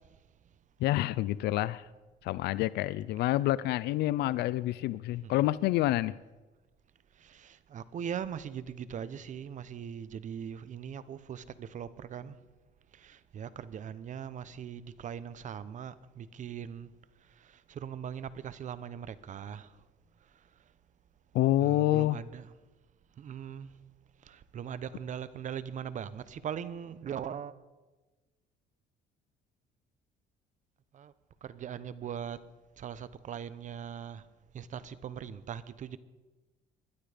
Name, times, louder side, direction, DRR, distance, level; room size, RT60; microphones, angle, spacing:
voice 1, 0.8-1.9 2.2-6.2 21.3-22.2, left 15 dB, 80° left, 0.4 m, -28 dB
voice 2, 7.2-12.3 12.9-16.9 17.4-19.7 21.6-22.5 23.2-23.7 24.2-27.5 30.9-31.1 31.4-32.4 32.8-34.2 34.5-36.0, right 8 dB, 45° right, 0.9 m, -40 dB
20.5 x 12.0 x 5.1 m
cardioid pair, 110°, 17 cm